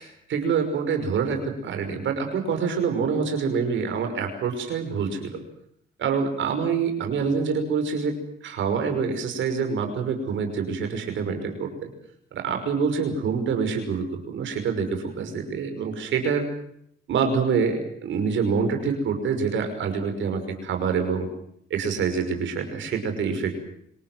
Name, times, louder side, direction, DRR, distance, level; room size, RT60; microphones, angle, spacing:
voice 1, 0.0-5.4 6.0-8.2 8.4-11.9 12.3-16.5 17.1-21.3 21.7-23.5, right 5 dB, 75° right, 6 dB, 5.8 m, -26 dB
26.0 x 19.0 x 7.8 m, 0.70 s
cardioid pair, 90°, 20 cm